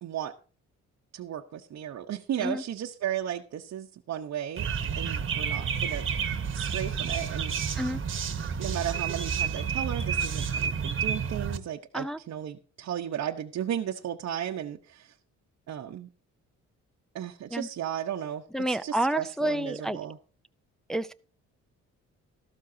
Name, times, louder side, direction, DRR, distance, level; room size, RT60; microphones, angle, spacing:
voice 1, 0.0-0.3 1.1-6.1 6.5-7.5 8.6-15.1 15.7-16.1 17.1-20.2, right 10 dB, 60° right, 2 dB, 0.9 m, -35 dB
sound 1, 4.6-11.6, right 6 dB, 40° right, 1.2 m, -30 dB
voice 2, 18.5-20.0 20.9-21.1, right 1 dB, ahead, 10 dB, 0.5 m, -29 dB
13.5 x 12.5 x 2.7 m, 0.38 s
cardioid pair, 90°, 30 cm